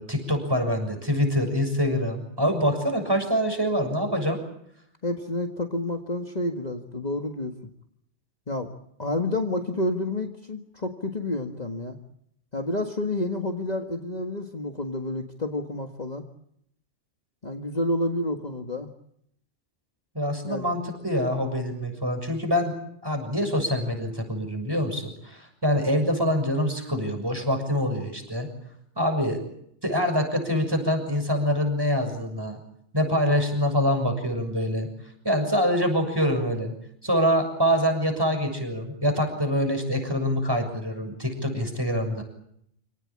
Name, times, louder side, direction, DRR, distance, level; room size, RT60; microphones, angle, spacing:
voice 1, 0.0-4.4 20.1-22.7 23.0-28.5 28.9-29.4 29.8-32.6 32.9-34.9 35.2-36.7 37.0-42.2, equal, 20° right, 5 dB, 6.8 m, -25 dB
voice 2, 5.0-7.6 8.5-8.7 9.0-12.0 12.5-16.3 17.4-18.9 20.5-20.6, left 1 dB, 35° left, 4 dB, 1.9 m, -29 dB
28.5 x 18.5 x 8.8 m, 0.72 s
omnidirectional pair, 1.2 m